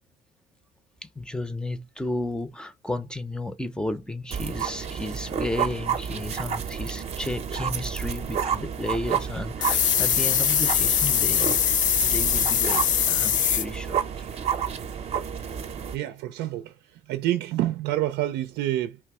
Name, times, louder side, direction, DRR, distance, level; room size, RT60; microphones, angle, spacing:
voice 1, 1.2-14.4, left 2 dB, 5° left, 0.6 m, -33 dB
sound 1, 4.3-16.0, right 7 dB, 40° right, 0.7 m, -30 dB
sound 2, 9.6-13.6, left 9 dB, 50° left, 0.4 m, -22 dB
voice 2, 15.9-19.0, right 14 dB, 85° right, 0.6 m, -28 dB
3.3 x 3.2 x 4.8 m
cardioid pair, 110°, 17 cm